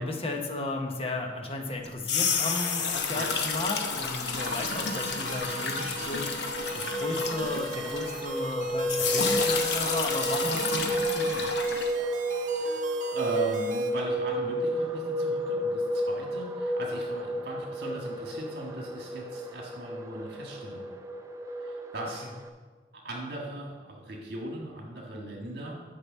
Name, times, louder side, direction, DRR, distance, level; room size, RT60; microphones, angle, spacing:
voice 1, 0.0-11.4, left 2 dB, 30° left, 2 dB, 0.9 m, -34 dB
sound 1, 1.8-8.5 8.9-11.9, left 5 dB, 70° left, 0.8 m, -31 dB
sound 2, 4.3-13.9, right 4 dB, 45° right, 0.8 m, -41 dB
sound 3, 4.9-22.5, right 1 dB, 15° right, 0.4 m, -32 dB
voice 2, 13.1-20.9 21.6-22.3 22.9-25.7, right 2 dB, 60° right, -1 dB, 1.7 m, -38 dB
6.7 x 5.8 x 7.3 m, 1.4 s
head